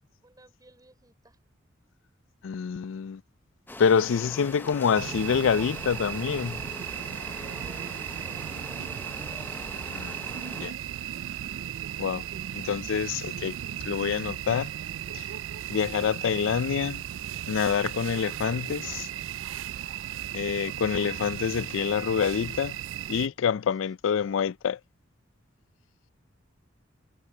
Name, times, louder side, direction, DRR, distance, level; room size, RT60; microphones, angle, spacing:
voice 1, 0.2-1.4 7.3-9.5 23.7-23.9, right 2 dB, 20° right, 5.6 m, -57 dB
voice 2, 2.4-3.2 3.8-6.6 9.9-10.2 10.6-10.7 12.0-12.2 12.5-13.5 13.9-14.7 15.7-17.0 17.5-19.1 20.3-22.7 23.1-24.8, left 7 dB, 80° left, 0.4 m, -26 dB
sound 1, 3.7-10.7, left 2 dB, 10° left, 0.6 m, -42 dB
sound 2, 4.9-23.3, right 11 dB, 80° right, 0.4 m, -36 dB
head